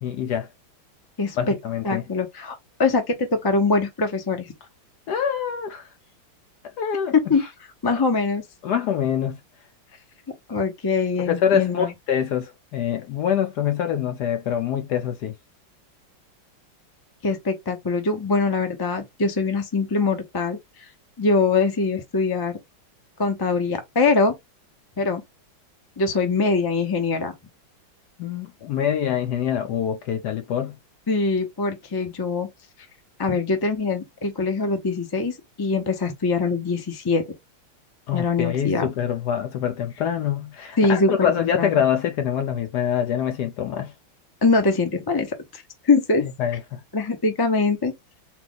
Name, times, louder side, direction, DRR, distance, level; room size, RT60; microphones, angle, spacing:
voice 1, 0.0-0.5 1.4-2.0 5.1-5.9 6.8-7.5 7.9-8.0 8.6-9.4 11.2-15.4 28.2-30.8 38.1-43.9 46.2-46.8, left 9 dB, 70° left, 1.0 m, -25 dB
voice 2, 1.2-1.5 1.8-4.5 7.1-7.4 7.8-8.4 10.5-11.9 17.2-20.9 21.2-22.6 23.2-24.4 25.0-25.2 26.0-27.3 31.1-32.5 33.2-37.2 38.1-38.9 40.8-41.7 44.4-46.2 46.9-47.9, left 4 dB, 30° left, 0.4 m, -23 dB
4.2 x 2.4 x 3.9 m
omnidirectional pair, 2.2 m